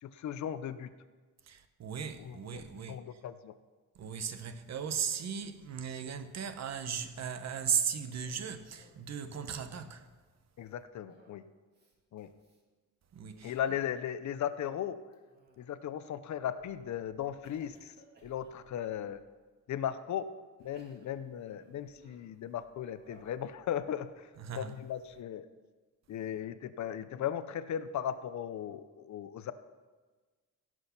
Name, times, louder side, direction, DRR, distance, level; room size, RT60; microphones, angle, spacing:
voice 1, 0.0-0.9 2.2-2.6 2.9-3.5 10.6-11.4 12.1-12.3 13.4-15.0 15.6-17.9 18.2-19.2 19.7-20.3 20.6-24.3 24.6-25.5 26.1-29.5, left 10 dB, 60° left, 0.6 m, -37 dB
voice 2, 1.4-3.2 3.9-10.1 13.1-13.6 24.4-24.8, right 7 dB, 55° right, 1.0 m, -37 dB
Cough, 7.9-9.1 9.4-10.0 11.1-11.4 11.7-11.9 12.4-12.6 13.2-13.6 15.1-15.9 16.5-16.9 17.4-19.2 19.9-20.0 20.6-22.4 23.0-23.4, right 2 dB, 30° right, 2.0 m, -64 dB
17.0 x 6.2 x 5.8 m
cardioid pair, 150°, 32 cm